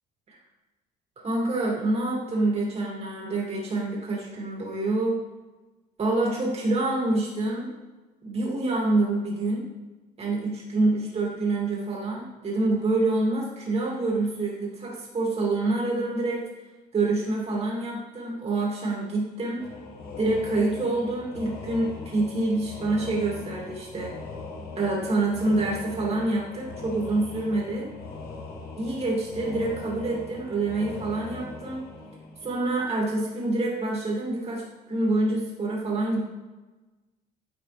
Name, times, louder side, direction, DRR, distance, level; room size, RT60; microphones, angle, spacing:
voice 1, 1.2-5.2 6.0-7.7 8.2-9.7 10.2-16.4 16.9-19.7 20.2-24.1 24.8-27.9 28.8-31.8 32.4-36.2, right 2 dB, 35° right, -3 dB, 2.7 m, -26 dB
sound 1, 19.6-33.0, left 3 dB, 65° left, 1.2 m, -40 dB
9.9 x 4.9 x 3.5 m, 1.2 s
cardioid pair, 110°, 17 cm